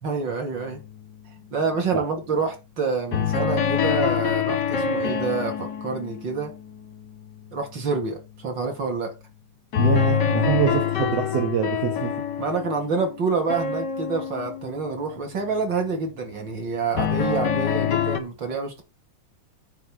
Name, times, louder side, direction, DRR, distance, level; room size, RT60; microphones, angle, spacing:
voice 1, 0.0-0.8 1.5-6.5 7.5-9.1 12.4-18.8, right 4 dB, 40° right, 2.9 m, -27 dB
sound 1, 0.6-1.0 3.1-7.2 9.7-15.3 17.0-18.2, left 8 dB, 50° left, 1.3 m, -25 dB
voice 2, 9.8-12.1, right 10 dB, 65° right, 2.2 m, -24 dB
9.4 x 4.5 x 6.1 m
omnidirectional pair, 3.4 m